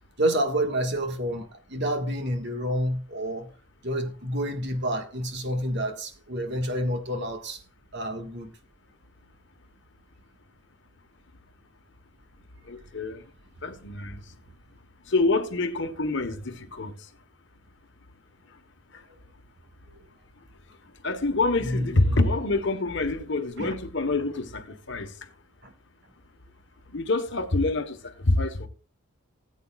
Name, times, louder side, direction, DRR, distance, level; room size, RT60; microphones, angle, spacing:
voice 1, 0.2-3.5 3.8-7.6 7.9-8.5 21.6-22.3 23.6-23.8 25.6-25.7, equal, 55° right, 1.6 m, -29 dB
voice 2, 12.7-13.2 13.6-14.2 15.1-16.9 21.0-25.1 26.9-28.7, left 2 dB, 60° left, 1.2 m, -26 dB
18.5 x 8.4 x 2.4 m
head